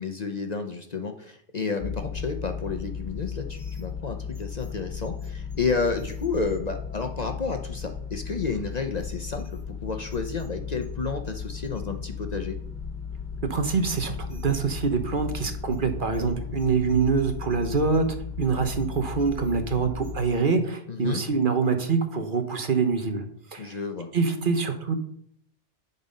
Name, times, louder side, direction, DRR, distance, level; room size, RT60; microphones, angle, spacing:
voice 1, 0.0-12.6 20.9-21.2 23.6-24.1, left 4 dB, 45° left, 6 dB, 0.8 m, -31 dB
sound 1, 1.8-20.2, left 6 dB, 60° left, 1.6 m, -35 dB
voice 2, 13.5-18.1 18.4-23.2 23.5-23.8 24.1-25.0, right 5 dB, 50° right, 6 dB, 1.2 m, -25 dB
11.0 x 4.2 x 5.2 m, 0.68 s
omnidirectional pair, 1.1 m